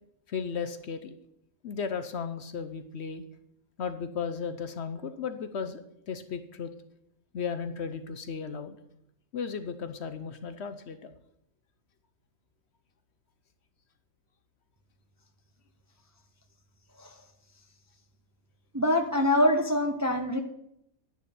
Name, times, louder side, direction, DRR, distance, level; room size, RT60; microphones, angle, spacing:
voice 1, 0.3-1.2 1.6-3.2 3.8-5.8 6.1-6.7 7.3-8.8 9.3-11.1, left 6 dB, 60° left, 10 dB, 0.9 m, -35 dB
voice 2, 18.7-20.4, left 1 dB, 15° right, 4 dB, 0.7 m, -24 dB
10.5 x 9.9 x 4.3 m, 0.78 s
omnidirectional pair, 1.4 m